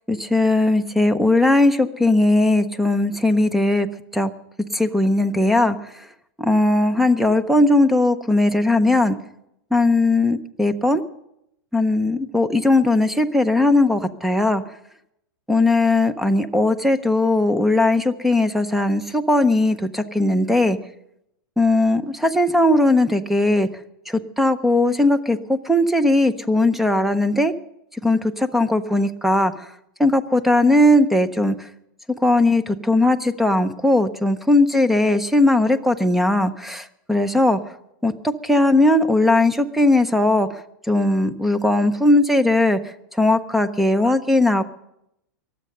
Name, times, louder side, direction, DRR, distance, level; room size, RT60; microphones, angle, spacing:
voice 1, 0.1-3.9 4.1-4.3 4.7-5.8 6.4-9.2 9.7-11.0 11.7-14.6 15.5-20.8 21.6-23.7 24.1-27.5 28.0-29.5 30.0-31.5 32.2-37.6 38.0-40.5 40.9-42.8 43.2-44.6, left 2 dB, ahead, 12 dB, 0.6 m, -18 dB
22.5 x 7.6 x 6.5 m, 0.80 s
supercardioid pair, 140°, 11 cm